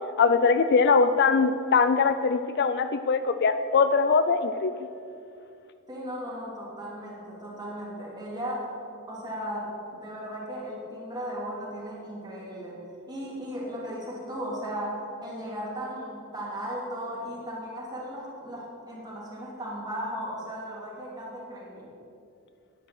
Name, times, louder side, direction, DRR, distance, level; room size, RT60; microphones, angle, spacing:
voice 1, 0.2-4.9, left 5 dB, 50° left, 10 dB, 0.4 m, -22 dB
voice 2, 5.9-8.7 9.1-12.8 13.1-21.9, equal, 20° right, -5 dB, 2.8 m, -36 dB
11.0 x 9.5 x 5.9 m, 2.5 s
head